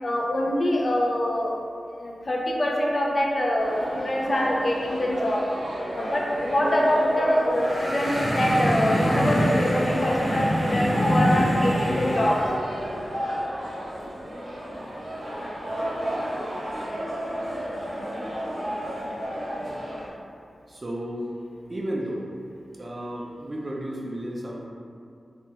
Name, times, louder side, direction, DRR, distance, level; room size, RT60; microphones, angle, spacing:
voice 1, 0.0-1.5 2.0-5.4 5.9-12.4, left 1 dB, 40° left, -2 dB, 0.4 m, -24 dB
sound 1, 3.6-20.1, equal, 60° right, 0.8 m, -32 dB
sound 2, 7.5-12.5, equal, 10° right, 1.0 m, -25 dB
voice 2, 20.7-21.3 21.7-22.3 22.7-24.7, equal, 30° right, -3 dB, 0.4 m, -33 dB
3.2 x 2.3 x 2.8 m, 2.3 s
wide cardioid pair, 135°, 0 cm